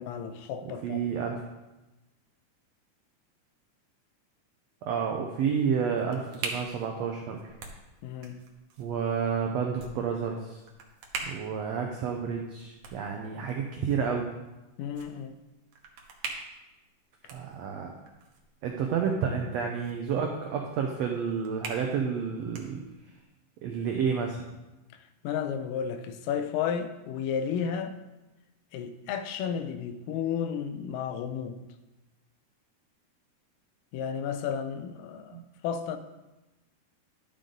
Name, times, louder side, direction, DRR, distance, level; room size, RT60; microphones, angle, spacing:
voice 1, 0.0-1.1 8.0-8.4 14.8-15.4 25.2-28.0 28.7-31.6 33.9-36.0, left 7 dB, 80° left, 9 dB, 2.2 m, -32 dB
voice 2, 0.8-1.4 4.8-7.5 8.8-10.6 11.2-14.3 17.3-17.9 18.6-22.8 23.6-24.4 35.3-35.4, right 6 dB, 85° right, 2 dB, 1.5 m, -30 dB
sound 1, 5.5-23.2, right 4 dB, 65° right, 2.1 m, -45 dB
12.0 x 5.3 x 3.8 m, 1.0 s
omnidirectional pair, 3.8 m